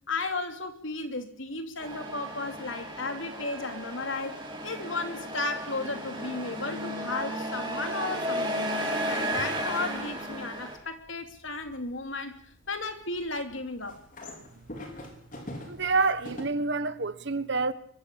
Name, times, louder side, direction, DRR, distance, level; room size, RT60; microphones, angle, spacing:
voice 1, 0.1-4.4 4.6-8.8 9.1-12.4 12.7-14.0, left 3 dB, 70° left, 3.1 m, -34 dB
Truck, 1.8-10.8, equal, 25° right, 6.5 m, -34 dB
sound 1, 9.2-16.4, left 1 dB, 40° left, 5.1 m, -46 dB
voice 2, 15.7-17.7, right 3 dB, 60° right, 1.3 m, -27 dB
23.5 x 14.5 x 8.4 m
head